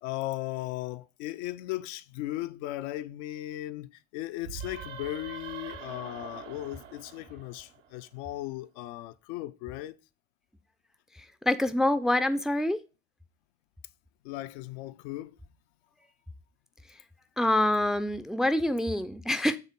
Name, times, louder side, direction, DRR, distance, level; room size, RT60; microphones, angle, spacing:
voice 1, 0.0-10.0 14.2-15.4, left 16 dB, 60° left, 0.5 m, -37 dB
sound 1, 4.4-8.0, right 7 dB, 70° right, 0.9 m, -43 dB
voice 2, 11.1-12.8 17.4-19.6, left 1 dB, ahead, 0.5 m, -26 dB
7.4 x 3.6 x 5.2 m
figure-of-eight pair, 55°, 38 cm